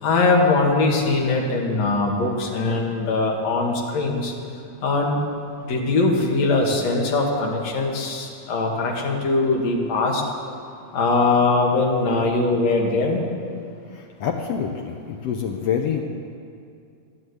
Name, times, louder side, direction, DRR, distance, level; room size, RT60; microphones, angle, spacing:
voice 1, 0.0-4.3 4.8-5.2 5.7-10.2 10.9-13.2, left 3 dB, 55° left, 0 dB, 2.7 m, -21 dB
voice 2, 13.9-16.0, left 7 dB, 75° left, 2 dB, 1.5 m, -26 dB
14.0 x 9.9 x 8.1 m, 2.4 s
omnidirectional pair, 3.8 m